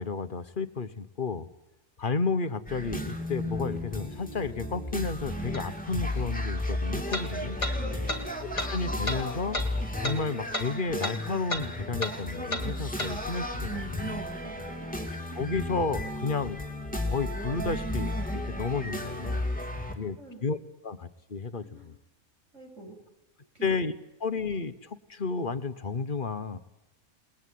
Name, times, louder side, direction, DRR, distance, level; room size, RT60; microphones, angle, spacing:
voice 1, 0.0-1.5 2.0-7.6 8.5-9.6 10.0-14.3 15.3-16.6 17.0-19.5 19.9-20.6 20.8-22.0 23.6-23.9 24.2-26.6, left 4 dB, 40° left, 13 dB, 1.3 m, -32 dB
sound 1, 2.7-19.9, left 1 dB, 5° left, 3.1 m, -34 dB
sound 2, 5.5-5.6 7.1-7.3 7.6-7.8 8.1-8.2 8.6-8.7 9.1-9.2 9.5-9.7 10.0-10.2 10.5-10.7 11.0-11.2 11.5-11.7 12.0-12.2 12.5-12.7 13.0-13.1, left 1 dB, 20° left, 2.5 m, -31 dB
voice 2, 7.7-8.3 14.3-14.9 20.2-20.4 21.6-21.9 22.5-23.0 23.5-23.7, right 3 dB, 55° right, 2 dB, 7.6 m, -47 dB
29.0 x 20.0 x 9.5 m, 0.98 s
omnidirectional pair, 1.5 m